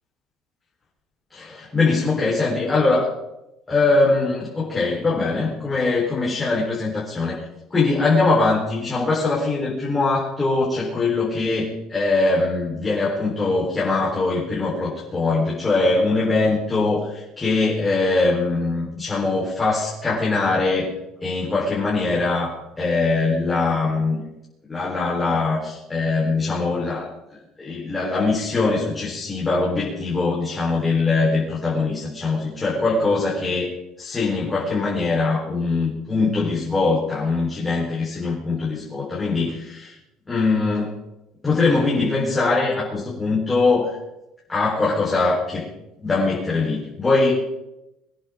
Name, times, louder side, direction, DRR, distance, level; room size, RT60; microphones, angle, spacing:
voice 1, 1.3-3.1 3.7-7.4 7.7-20.9 21.2-24.2 24.7-27.1 27.6-39.9 40.3-41.0 41.4-44.0 44.5-45.7 46.0-47.3, left 3 dB, 15° left, -6 dB, 4.1 m, -22 dB
25.0 x 10.0 x 3.8 m, 0.90 s
cardioid pair, 150°, 0 cm